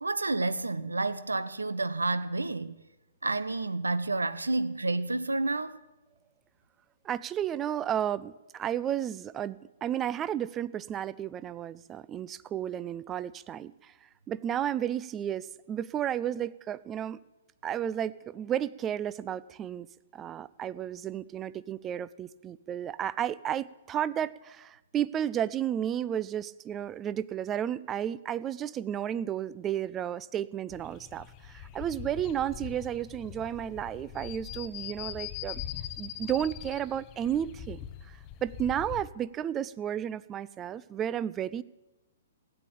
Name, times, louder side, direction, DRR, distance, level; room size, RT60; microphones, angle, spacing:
voice 1, 0.0-2.8 3.2-5.8, right 2 dB, 75° right, 0.7 m, -30 dB
voice 2, 7.0-13.9 14.3-17.2 17.6-19.9 20.1-35.6 36.0-37.8 38.1-41.6, right 10 dB, 20° right, 0.4 m, -33 dB
sound 1, 30.7-39.1, left 11 dB, 30° left, 0.6 m, -42 dB
15.5 x 9.1 x 8.4 m
figure-of-eight pair, 120°, 0 cm